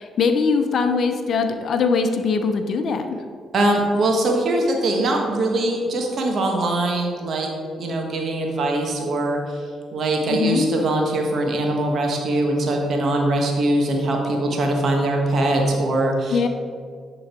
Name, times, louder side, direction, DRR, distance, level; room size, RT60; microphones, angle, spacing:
voice 1, 0.0-3.2 10.3-10.7 16.3-16.5, left 5 dB, 60° left, 7 dB, 0.7 m, -21 dB
voice 2, 3.5-7.5 7.8-9.6 9.9-16.4, right 1 dB, 60° right, 1 dB, 1.5 m, -22 dB
10.5 x 3.9 x 4.4 m, 2.1 s
supercardioid pair, 55°, 0 cm